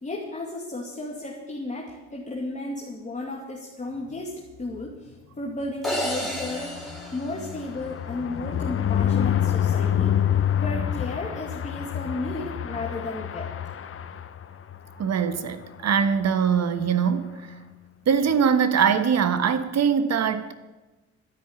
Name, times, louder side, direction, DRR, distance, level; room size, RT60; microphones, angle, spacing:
voice 1, 0.0-6.7 7.1-10.2 10.6-13.5, left 2 dB, 25° left, 2.4 m, -34 dB
sound 1, 5.8-8.2, equal, ahead, 3.9 m, -32 dB
sound 2, 6.0-14.8 15.2-15.4 15.6-15.7 16.0-16.3, left 9 dB, 45° left, 0.9 m, -27 dB
voice 2, 15.0-17.4 18.1-20.5, right 7 dB, 60° right, 1.3 m, -22 dB
12.0 x 10.5 x 8.8 m
cardioid pair, 90°, 30 cm